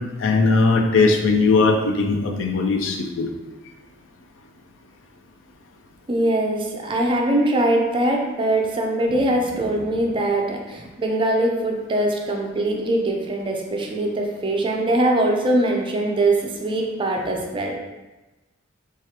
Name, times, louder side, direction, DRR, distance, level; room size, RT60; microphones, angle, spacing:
voice 1, 0.2-3.3, left 3 dB, 75° left, 4 dB, 0.5 m, -19 dB
voice 2, 6.1-17.8, right 1 dB, 25° right, 1 dB, 0.4 m, -22 dB
4.7 x 2.4 x 2.8 m, 1.1 s
head